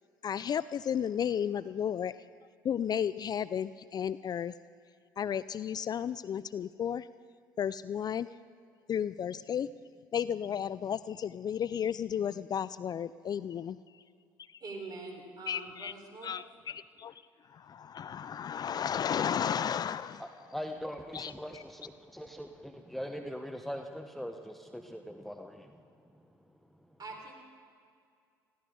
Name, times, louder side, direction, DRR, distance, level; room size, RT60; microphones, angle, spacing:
voice 1, 0.2-2.1 2.6-4.5 5.2-7.1 7.6-8.3 8.9-9.7 10.1-13.8 15.5-15.9 16.2-17.1 17.5-20.3 21.1-21.6, left 8 dB, 40° left, 16 dB, 0.4 m, -33 dB
voice 2, 14.6-16.3 27.0-27.3, right 3 dB, 40° right, 1 dB, 4.4 m, -44 dB
voice 3, 20.2-25.7, equal, ahead, 5 dB, 1.0 m, -41 dB
20.5 x 16.0 x 3.8 m, 2.3 s
hypercardioid pair, 60°, 10 cm